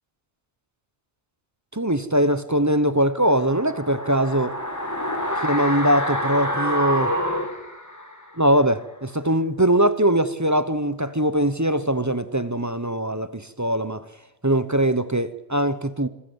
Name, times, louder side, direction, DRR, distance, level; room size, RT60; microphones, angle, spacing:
voice 1, 1.7-4.6 5.4-7.1 8.4-14.1 14.4-16.1, right 1 dB, 15° right, 0.8 m, -21 dB
sound 1, 3.2-8.4 8.7-8.8, equal, 15° left, 2.5 m, -27 dB
26.0 x 14.5 x 8.0 m
omnidirectional pair, 1.2 m